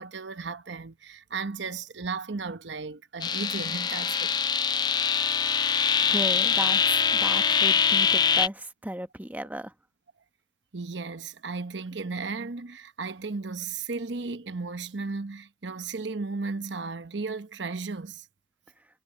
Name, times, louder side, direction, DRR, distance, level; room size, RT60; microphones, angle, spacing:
voice 1, 0.0-4.4 10.7-18.3, right 4 dB, 80° right, 1.0 m, -35 dB
sound 1, 3.2-8.5, left 7 dB, 25° left, 0.3 m, -24 dB
voice 2, 6.1-9.7, right 1 dB, 10° right, 1.0 m, -35 dB
head